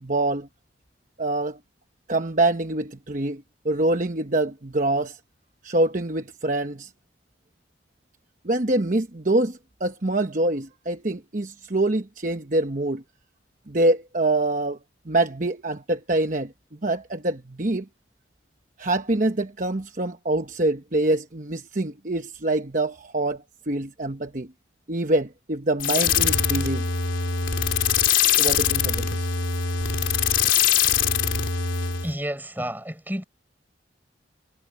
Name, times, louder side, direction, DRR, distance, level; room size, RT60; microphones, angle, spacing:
voice 1, 0.0-0.5 1.2-1.6 2.1-5.2 5.6-6.9 8.4-13.0 13.7-14.8 15.1-16.5 16.8-17.9 18.8-24.5 24.9-26.9 28.4-29.3, right 2 dB, 40° right, 1.0 m, -25 dB
sound 1, 25.8-32.1, left 8 dB, 85° left, 3.4 m, -22 dB
voice 2, 32.0-33.2, right 1 dB, 10° right, 5.3 m, -30 dB
head